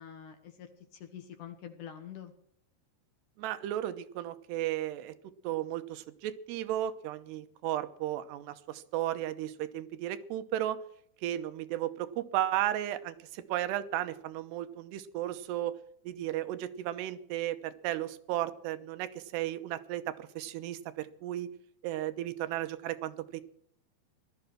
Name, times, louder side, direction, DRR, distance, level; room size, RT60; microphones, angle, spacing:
voice 1, 0.0-2.3, left 9 dB, 65° left, 8 dB, 2.3 m, -46 dB
voice 2, 3.4-5.1 5.4-10.8 11.2-15.8 16.0-21.5 21.8-23.4, right 13 dB, 85° right, 11 dB, 3.1 m, -34 dB
17.5 x 13.0 x 6.1 m, 0.67 s
omnidirectional pair, 4.7 m